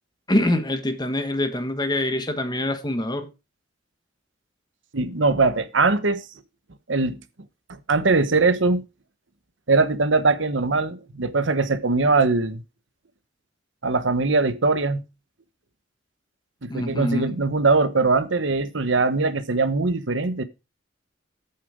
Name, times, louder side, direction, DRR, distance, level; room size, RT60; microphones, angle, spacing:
voice 1, 0.3-3.3 16.7-17.3, left 1 dB, 20° left, 1.4 m, -25 dB
voice 2, 4.9-6.2 6.9-7.2 7.9-8.8 9.7-12.6 13.8-15.0 16.6-20.4, right 3 dB, 75° right, 1.1 m, -21 dB
8.4 x 7.3 x 5.1 m
head